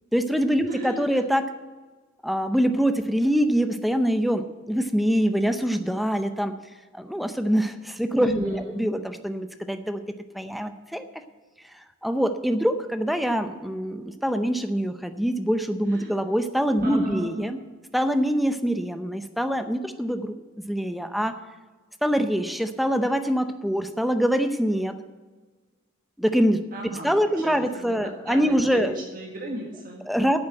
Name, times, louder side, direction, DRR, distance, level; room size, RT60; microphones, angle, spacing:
voice 1, 0.1-1.4 2.2-6.5 6.9-10.0 10.3-11.0 11.7-17.6 17.9-20.4 20.7-21.3 22.0-25.0 26.2-26.6 27.0-28.9 30.1-30.4, equal, ahead, 8 dB, 0.6 m, -24 dB
voice 2, 0.7-1.1 8.2-8.8 15.9-16.1 16.8-17.5 26.7-30.1, right 1 dB, 45° right, 0 dB, 1.7 m, -36 dB
9.0 x 7.4 x 8.8 m, 1.3 s
head